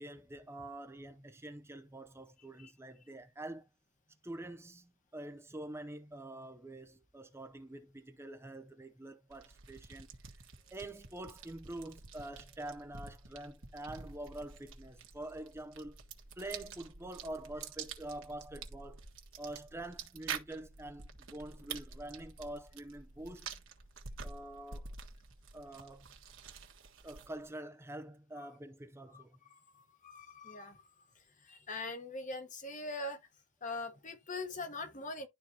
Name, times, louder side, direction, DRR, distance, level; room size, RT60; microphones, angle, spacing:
voice 1, 0.0-3.6 4.2-10.1 10.3-10.4 10.7-16.0 16.4-19.1 19.4-23.5 24.2-24.9 25.5-26.1 27.0-29.4, right 1 dB, 10° right, 0.5 m, -46 dB
sound 1, 9.3-27.5, right 6 dB, 65° right, 1.5 m, -48 dB
voice 2, 29.5-30.9 31.4-33.2 33.6-35.3, left 2 dB, 35° left, 1.2 m, -42 dB
12.0 x 4.1 x 2.8 m
head